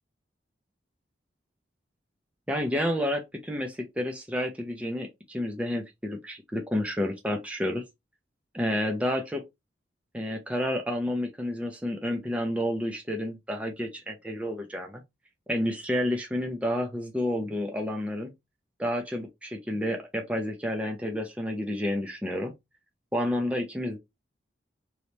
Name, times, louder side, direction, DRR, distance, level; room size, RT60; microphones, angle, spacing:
voice 1, 2.5-7.8 8.5-9.4 10.1-15.0 15.5-18.3 18.8-22.5 23.1-24.0, left 1 dB, 5° right, 0.7 m, -30 dB
3.4 x 3.1 x 4.1 m
head